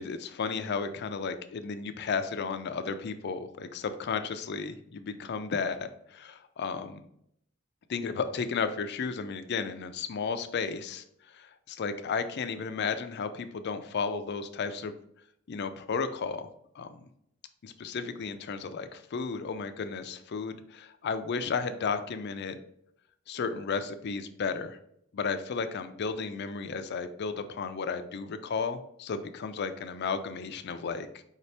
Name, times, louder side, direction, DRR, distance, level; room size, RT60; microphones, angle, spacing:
voice 1, 0.0-7.0 7.9-14.9 15.5-16.5 16.8-17.1 17.6-22.6 23.3-24.8 25.1-31.2, left 5 dB, 55° left, 10 dB, 0.4 m, -33 dB
5.0 x 2.8 x 3.2 m, 0.73 s
head